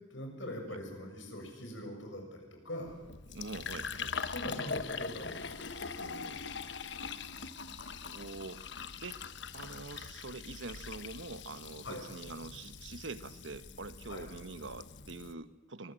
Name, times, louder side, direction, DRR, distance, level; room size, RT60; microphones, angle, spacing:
voice 1, 0.1-3.0 4.3-6.3 11.8-12.0 14.1-14.2, left 1 dB, 85° left, 3 dB, 6.8 m, -43 dB
Fill (with liquid), 2.9-15.3, left 5 dB, 65° left, 1.1 m, -42 dB
voice 2, 3.3-4.2 8.1-9.2 9.5-15.9, right 3 dB, 80° right, 13 dB, 1.2 m, -45 dB
25.0 x 20.5 x 7.7 m, 1.1 s
head